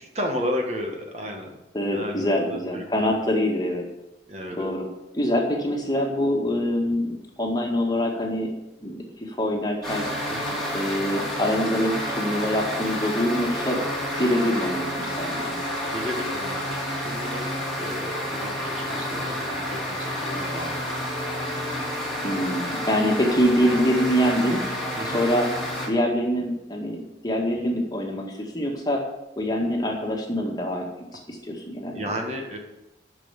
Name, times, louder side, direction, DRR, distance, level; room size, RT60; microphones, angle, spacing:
voice 1, 0.1-1.5 1.9-3.2 4.3-4.8 10.3-10.6 15.9-17.5 17.8-21.1 25.0-25.2 31.9-32.6, equal, 35° right, 2 dB, 1.7 m, -33 dB
voice 2, 1.7-3.9 4.6-4.9 5.1-8.5 8.8-9.0 9.3-10.1 10.7-13.8 14.2-15.6 22.2-24.6 25.1-25.5 25.9-29.0 29.4-30.9 31.3-32.1, equal, 20° left, 0 dB, 1.9 m, -25 dB
sound 1, 9.8-25.9, equal, ahead, 2.6 m, -29 dB
10.5 x 6.3 x 8.2 m, 0.93 s
head